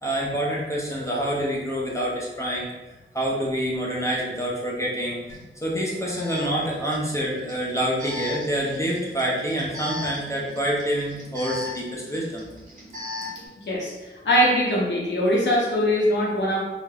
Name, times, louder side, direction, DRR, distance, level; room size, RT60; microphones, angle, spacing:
voice 1, 0.0-2.7 3.1-12.4, equal, 15° left, -4 dB, 0.4 m, -27 dB
Alarm, 5.3-5.4 6.1-13.5, left 3 dB, 40° right, 0.9 m, -38 dB
voice 2, 14.2-16.6, equal, 60° left, -4 dB, 0.6 m, -21 dB
3.2 x 2.0 x 2.2 m, 1.1 s
wide cardioid pair, 175°, 21 cm